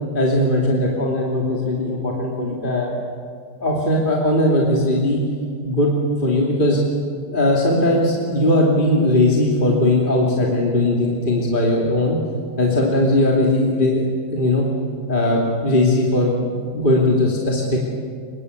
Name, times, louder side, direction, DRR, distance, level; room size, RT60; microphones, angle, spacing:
voice 1, 0.1-2.9 3.6-5.2 5.6-5.9 6.2-6.8 7.3-12.2 12.6-14.7 15.1-17.8, left 1 dB, 25° left, -2 dB, 2.9 m, -19 dB
24.5 x 22.0 x 8.4 m, 2.1 s
omnidirectional pair, 2.3 m